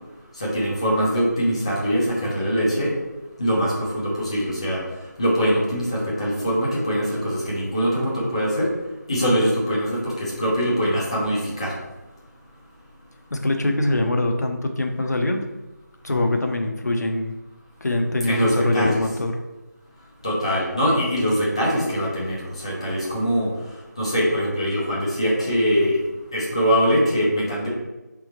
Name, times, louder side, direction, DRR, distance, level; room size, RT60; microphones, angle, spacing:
voice 1, 0.4-2.9 3.4-4.8 5.2-8.7 9.1-11.7 18.3-19.0 20.2-23.5 24.0-26.0 26.3-27.7, equal, 20° left, -6 dB, 0.7 m, -22 dB
voice 2, 13.3-15.4 16.0-17.3 17.8-19.3, left 2 dB, 60° left, 4 dB, 0.6 m, -23 dB
3.8 x 3.5 x 3.0 m, 1.1 s
figure-of-eight pair, 175°, 10 cm